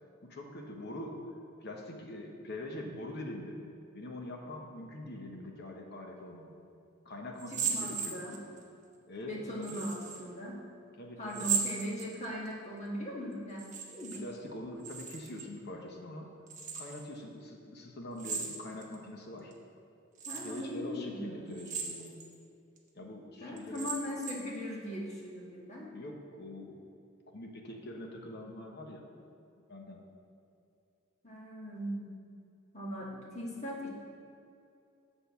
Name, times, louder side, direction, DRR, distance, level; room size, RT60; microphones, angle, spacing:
voice 1, 0.2-1.2 1.6-3.6 3.9-6.5 7.0-8.2 9.1-9.9 11.0-11.5 14.1-16.3 16.7-19.5 20.4-22.2 22.9-23.9 25.9-26.8 27.3-29.0 29.7-30.0, left 1 dB, 50° left, 1 dB, 0.9 m, -44 dB
sound 1, 7.4-8.6 9.6-10.2 11.3-12.5 13.5-14.2 14.5-15.5 16.5-17.1 18.2-19.0 19.5-19.6 20.2-20.7 21.5-22.3 22.8-22.9 23.6-24.6, right 6 dB, 35° right, 0.9 m, -37 dB
voice 2, 7.5-8.4 9.3-10.5 11.2-14.2 20.3-21.4 23.4-25.9 31.2-32.1 32.7-33.9, equal, 35° left, -3 dB, 1.4 m, -39 dB
8.0 x 4.0 x 6.9 m, 2.6 s
head